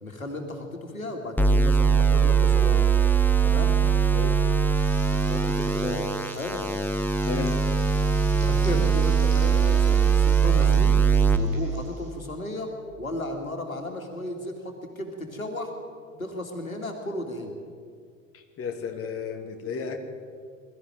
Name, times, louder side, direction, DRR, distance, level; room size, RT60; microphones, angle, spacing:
voice 1, 0.0-2.8 3.4-3.8 5.1-6.6 8.3-11.0 11.3-12.7 13.0-15.7 16.2-17.5, left 1 dB, 85° left, 3 dB, 2.5 m, -34 dB
sound 1, 1.4-11.4, right 6 dB, 5° left, 1.3 m, -21 dB
sound 2, 4.7-12.1, right 3 dB, 70° right, 5.2 m, -47 dB
voice 2, 7.2-7.6 18.3-20.0, left 5 dB, 35° left, 4 dB, 2.4 m, -33 dB
22.5 x 13.5 x 9.2 m, 2.1 s
figure-of-eight pair, 75°, 41 cm